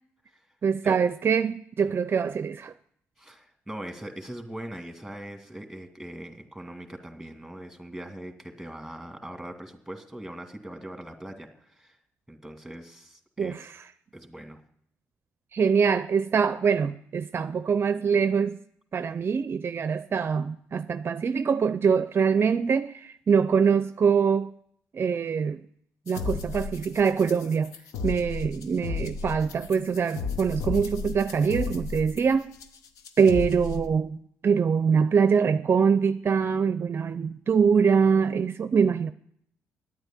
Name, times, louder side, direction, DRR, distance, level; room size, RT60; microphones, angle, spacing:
voice 1, 0.6-2.7 13.4-13.6 15.5-18.6 18.9-24.5 24.9-25.6 26.1-27.7 28.0-32.5 33.2-39.1, right 6 dB, 45° right, 0.5 m, -24 dB
voice 2, 3.2-12.0 12.3-13.5 14.1-14.6, right 1 dB, ahead, 2.3 m, -41 dB
sound 1, 26.1-33.9, left 5 dB, 85° left, 0.9 m, -34 dB
9.8 x 8.9 x 8.9 m
supercardioid pair, 70°, 5 cm